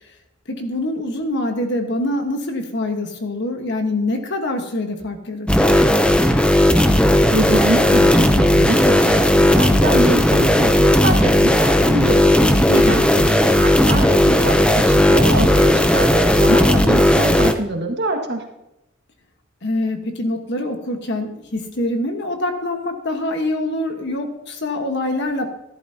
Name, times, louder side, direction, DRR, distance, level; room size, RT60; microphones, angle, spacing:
voice 1, 0.5-5.9 12.7-13.1 19.6-25.5, left 1 dB, 55° left, 5 dB, 1.4 m, -25 dB
sound 1, 5.5-17.5, left 1 dB, 5° left, 0.6 m, -15 dB
voice 2, 7.3-12.3 12.7-18.4, right 1 dB, 55° right, 3 dB, 1.7 m, -24 dB
13.5 x 11.5 x 2.8 m, 0.88 s
head